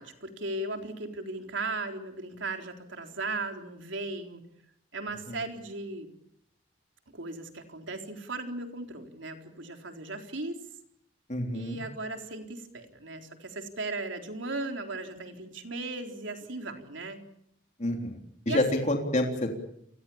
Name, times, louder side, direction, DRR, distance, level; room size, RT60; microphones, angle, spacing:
voice 1, 0.0-4.4 4.9-6.1 7.1-10.6 11.5-17.2 18.5-18.9, right 2 dB, 70° right, 4 dB, 4.0 m, -37 dB
voice 2, 11.3-11.8 17.8-18.2 18.5-19.5, left 1 dB, 35° left, 2 dB, 3.6 m, -28 dB
30.0 x 24.0 x 7.2 m, 0.75 s
head